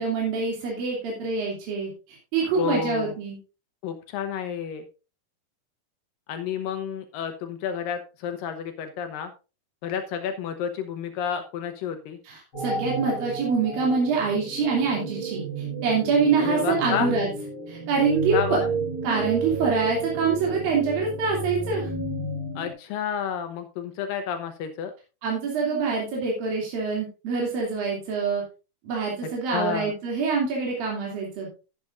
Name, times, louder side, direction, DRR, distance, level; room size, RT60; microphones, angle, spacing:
voice 1, 0.0-3.4 12.3-17.3 17.7-18.6 19.0-21.9 25.2-28.4 28.8-31.5, right 4 dB, 75° right, -2 dB, 4.5 m, -25 dB
voice 2, 2.5-3.1 3.8-4.9 6.3-9.3 9.8-12.2 16.4-17.1 18.3-18.7 22.6-24.9 29.5-29.9, left 8 dB, 80° left, 7 dB, 2.5 m, -30 dB
sound 1, 12.5-22.7, right 3 dB, 35° left, 4.5 m, -32 dB
12.0 x 11.0 x 2.5 m, 0.32 s
omnidirectional pair, 4.1 m